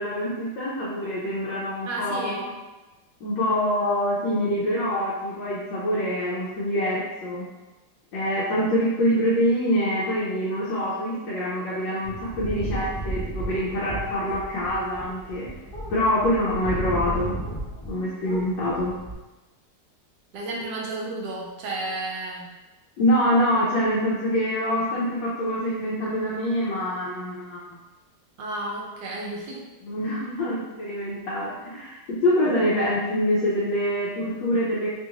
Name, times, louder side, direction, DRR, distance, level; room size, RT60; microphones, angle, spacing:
voice 1, 0.0-2.5 3.2-7.4 8.1-15.5 15.9-17.3 17.8-18.9 23.0-27.8 29.8-34.9, equal, 80° left, -7 dB, 1.4 m, -25 dB
voice 2, 1.9-2.4 20.3-22.4 28.4-29.6, right 2 dB, 75° right, -2 dB, 1.1 m, -32 dB
sound 1, 12.0-18.0 18.2-19.1, right 1 dB, 40° left, 0.4 m, -33 dB
3.4 x 2.4 x 2.9 m, 1.1 s
omnidirectional pair, 2.0 m